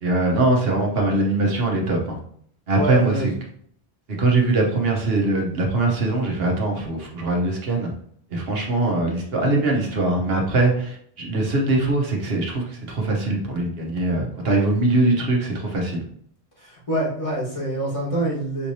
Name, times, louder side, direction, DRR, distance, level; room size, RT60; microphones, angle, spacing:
voice 1, 0.0-2.2 2.7-3.3 4.2-7.9 8.3-16.0, right 2 dB, 70° right, 0 dB, 1.2 m, -22 dB
voice 2, 2.7-3.3 16.6-18.7, right 1 dB, 35° left, -7 dB, 1.7 m, -26 dB
5.6 x 3.1 x 2.7 m, 0.62 s
omnidirectional pair, 1.0 m